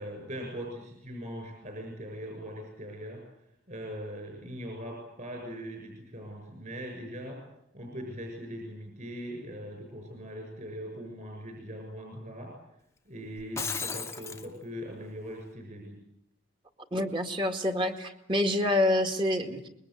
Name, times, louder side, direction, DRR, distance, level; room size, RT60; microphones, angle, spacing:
voice 1, 0.0-3.2 3.7-7.4 7.7-12.5 13.0-16.0, equal, 40° right, 2 dB, 6.8 m, -40 dB
Shatter, 13.4-14.5, left 5 dB, 15° left, 1.1 m, -34 dB
voice 2, 16.9-19.7, left 1 dB, 25° right, 6 dB, 2.1 m, -27 dB
26.0 x 22.0 x 8.0 m, 0.79 s
head